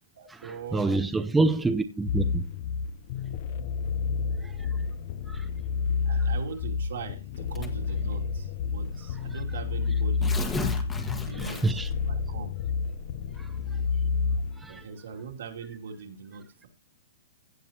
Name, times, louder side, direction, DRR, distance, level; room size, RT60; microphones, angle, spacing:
voice 1, 0.2-1.3 6.0-10.4 11.0-12.5 14.6-16.7, right 6 dB, 75° right, 2.6 m, -41 dB
voice 2, 0.7-2.4 4.4-4.7 5.3-5.4 11.6-11.9 13.4-13.5 14.6-14.8, right 3 dB, 5° right, 0.6 m, -27 dB
sound 1, 2.1-14.6, left 5 dB, 45° left, 0.7 m, -30 dB
Tearing, 7.5-7.9 8.8-8.9 9.2-9.3 10.0-11.9, left 3 dB, 10° left, 1.3 m, -33 dB
16.0 x 8.1 x 2.9 m
hypercardioid pair, 160°, 0 cm